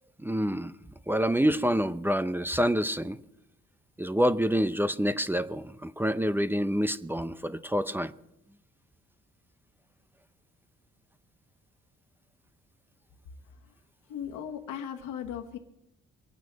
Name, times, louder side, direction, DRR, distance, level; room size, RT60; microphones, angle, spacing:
voice 1, 0.2-0.8 1.1-3.2 4.0-8.1, equal, 5° right, 13 dB, 0.6 m, -27 dB
voice 2, 14.1-15.6, left 9 dB, 85° left, 2 dB, 1.4 m, -37 dB
24.0 x 9.2 x 5.3 m, 0.85 s
cardioid pair, 90°, 30 cm